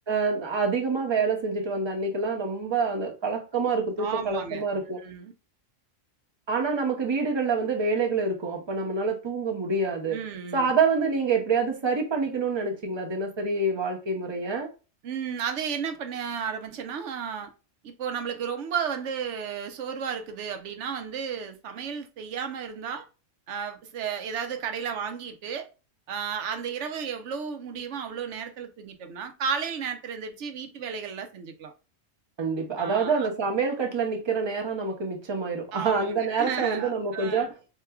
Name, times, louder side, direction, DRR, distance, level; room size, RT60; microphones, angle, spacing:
voice 1, 0.1-5.0 6.5-10.2 10.5-14.7 32.4-37.5, right 4 dB, 25° right, 0.7 m, -27 dB
voice 2, 4.0-4.6 5.0-5.3 10.1-10.8 15.0-17.5 17.8-23.1 23.5-25.7 26.1-31.7 32.8-33.3 35.7-37.5, right 7 dB, 70° right, 0.9 m, -33 dB
4.5 x 2.8 x 2.2 m
omnidirectional pair, 1.3 m